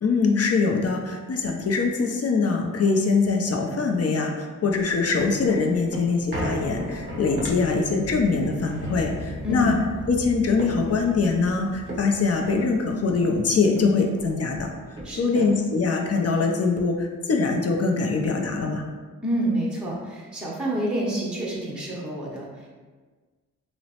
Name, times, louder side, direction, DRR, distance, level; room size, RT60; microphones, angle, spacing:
voice 1, 0.0-9.8 10.1-14.7 15.2-18.8, left 4 dB, 45° left, 2 dB, 0.5 m, -23 dB
sound 1, 4.7-13.4 13.8-13.9 14.1-15.5 16.0-16.1, equal, 30° right, 0.9 m, -36 dB
voice 2, 9.4-9.8 15.0-15.5 19.2-22.7, right 1 dB, 5° right, -5 dB, 0.7 m, -28 dB
2.9 x 2.0 x 2.8 m, 1.4 s
cardioid pair, 40°, 35 cm